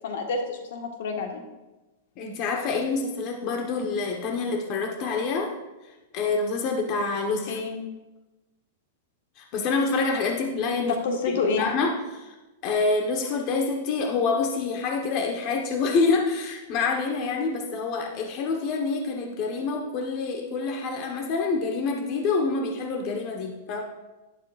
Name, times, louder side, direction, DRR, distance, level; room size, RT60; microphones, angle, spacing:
voice 1, 0.0-1.4 7.5-7.8 10.8-11.6, left 4 dB, 70° left, 3 dB, 1.6 m, -28 dB
voice 2, 2.2-5.5 6.1-7.6 9.4-11.0 11.3-12.3 12.6-23.8, left 4 dB, 40° left, 1 dB, 1.3 m, -27 dB
11.5 x 10.5 x 2.5 m, 1.1 s
supercardioid pair, 155°, 0 cm